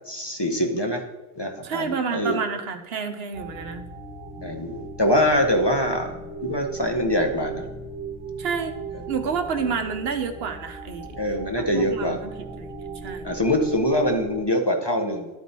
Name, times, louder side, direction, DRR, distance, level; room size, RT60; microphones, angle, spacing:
voice 1, 0.1-1.0 1.4-2.4 4.4-6.1 6.4-7.6 11.1-12.2 13.2-15.4, left 1 dB, 25° left, 3 dB, 0.7 m, -24 dB
voice 2, 1.6-3.8 8.4-8.7 9.1-11.1 11.6-13.3, right 6 dB, 80° right, 7 dB, 1.0 m, -29 dB
sound 1, 3.3-14.4, right 3 dB, 60° right, 1.2 m, -37 dB
11.5 x 4.5 x 4.1 m, 1.1 s
omnidirectional pair, 1.0 m